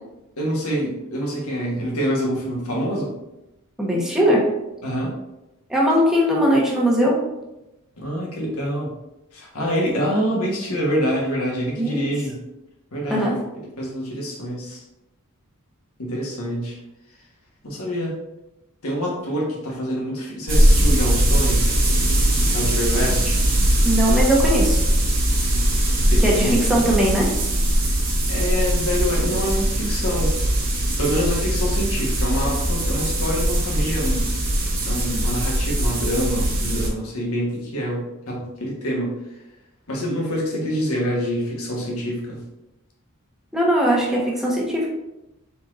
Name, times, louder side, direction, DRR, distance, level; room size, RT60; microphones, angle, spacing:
voice 1, 0.4-3.1 4.8-5.2 8.0-8.9 9.3-12.4 12.9-13.4 13.8-14.8 16.0-16.8 17.6-18.2 18.8-21.7 22.4-23.4 26.1-26.6 28.3-30.3 31.0-34.3 34.8-39.2 39.9-42.4, equal, 75° left, -2 dB, 1.2 m, -26 dB
voice 2, 3.8-4.5 5.7-7.2 11.8-12.0 13.1-13.3 23.8-24.8 26.2-27.3 43.5-44.9, equal, ahead, -4 dB, 0.9 m, -19 dB
sound 1, 20.5-36.9, right 1 dB, 40° right, 0.9 m, -20 dB
4.5 x 3.9 x 2.5 m, 0.93 s
head